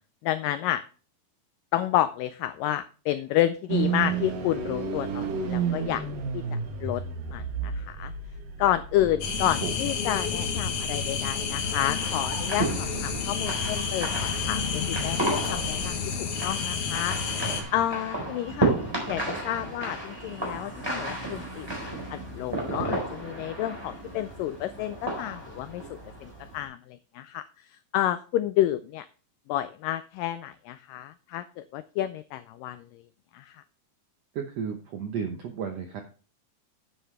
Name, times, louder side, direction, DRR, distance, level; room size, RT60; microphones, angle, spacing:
voice 1, 0.2-0.8 1.7-6.0 6.3-7.0 7.3-8.1 8.6-17.5 17.7-18.7 19.1-29.1 29.5-33.0 33.3-33.6, left 13 dB, 90° left, 12 dB, 1.9 m, -30 dB
sound 1, 3.7-16.8, right 6 dB, 65° right, 2.7 m, -34 dB
sound 2, 9.2-17.6, left 6 dB, 65° left, 1.5 m, -30 dB
voice 2, 9.6-9.9 17.4-17.9 34.3-36.0, right 6 dB, 85° right, 4 dB, 1.4 m, -34 dB
sound 3, 12.0-26.6, right 1 dB, 5° right, 3.8 m, -33 dB
9.9 x 9.3 x 3.3 m, 0.38 s
omnidirectional pair, 4.5 m